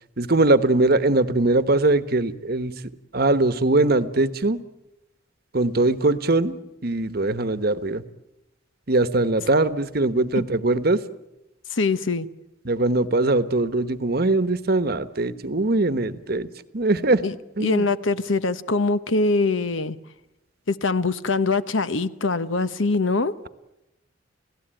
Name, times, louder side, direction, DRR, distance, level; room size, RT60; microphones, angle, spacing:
voice 1, 0.2-2.7 3.1-4.6 5.5-8.0 8.9-11.0 12.6-16.5 16.7-17.2 17.6-17.9, right 2 dB, 50° right, 1.1 m, -21 dB
voice 2, 11.7-12.3 17.2-17.3 17.6-20.0 20.7-23.3, left 3 dB, 80° left, 1.1 m, -23 dB
30.0 x 17.0 x 9.0 m
head